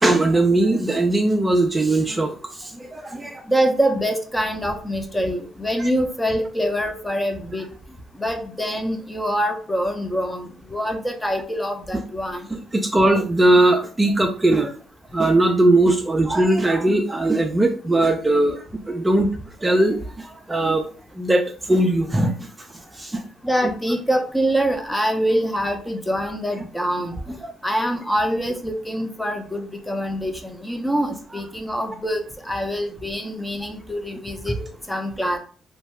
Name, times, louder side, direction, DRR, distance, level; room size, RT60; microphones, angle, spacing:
voice 1, 0.0-3.4 5.8-5.9 12.5-14.7 15.1-19.3 19.6-20.9 21.1-22.5 22.9-23.2 27.4-27.5 34.5-34.7, right 2 dB, 20° right, 3 dB, 0.5 m, -20 dB
voice 2, 3.5-7.7 8.2-12.5 23.4-27.3 27.6-34.5 34.9-35.4, equal, 10° left, 4 dB, 0.7 m, -24 dB
2.7 x 2.2 x 3.3 m, 0.42 s
supercardioid pair, 55°, 0 cm